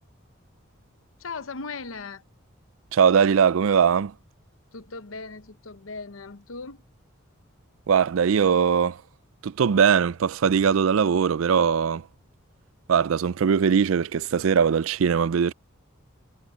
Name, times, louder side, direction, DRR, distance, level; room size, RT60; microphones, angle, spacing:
voice 1, 1.2-2.2 4.7-6.8, left 4 dB, 70° left, 0.9 m, -38 dB
voice 2, 2.9-4.1 7.9-9.0 9.4-12.0 12.9-15.5, right 7 dB, 75° right, 0.4 m, -20 dB
head